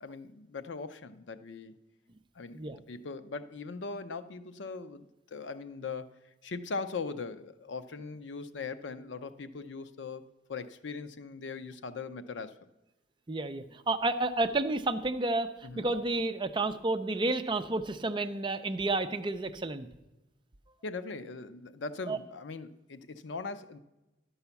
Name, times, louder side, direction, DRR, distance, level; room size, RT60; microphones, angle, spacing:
voice 1, 0.0-1.7 2.4-6.1 6.4-12.5 15.6-15.9 20.8-23.8, left 4 dB, 90° left, 12 dB, 0.6 m, -40 dB
voice 2, 13.3-19.9 22.1-22.2, right 2 dB, 25° right, 9 dB, 0.5 m, -31 dB
11.5 x 5.6 x 7.0 m, 1.0 s
head